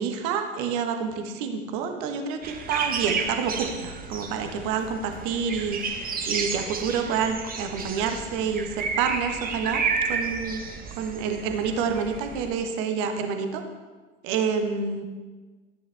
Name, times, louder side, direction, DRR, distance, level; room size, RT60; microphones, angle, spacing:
voice 1, 0.0-10.6 11.0-13.6 14.2-15.0, right 6 dB, 50° right, 6 dB, 1.4 m, -28 dB
sound 1, 2.4-12.5, right 5 dB, 25° right, 1.4 m, -32 dB
Drum kit, 3.8-9.1, left 2 dB, 80° right, 3.3 m, -50 dB
13.0 x 10.0 x 3.6 m, 1.3 s
figure-of-eight pair, 75°, 36 cm